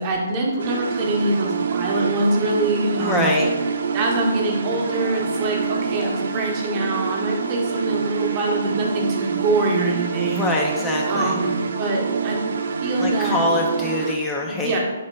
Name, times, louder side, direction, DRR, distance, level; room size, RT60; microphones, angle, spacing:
voice 1, 0.0-3.3 3.9-10.4 11.0-12.4 12.8-13.4 14.4-14.8, right 2 dB, 35° right, -1 dB, 0.8 m, -24 dB
sound 1, 0.6-14.1, right 6 dB, 65° right, 0.3 m, -26 dB
sound 2, 1.1-2.9 3.3-12.2, left 3 dB, 80° left, 0.9 m, -39 dB
voice 2, 3.0-3.5 10.2-11.4 13.0-14.8, left 2 dB, 10° left, -1 dB, 0.3 m, -24 dB
4.0 x 2.9 x 3.2 m, 1.3 s
hypercardioid pair, 140°, 0 cm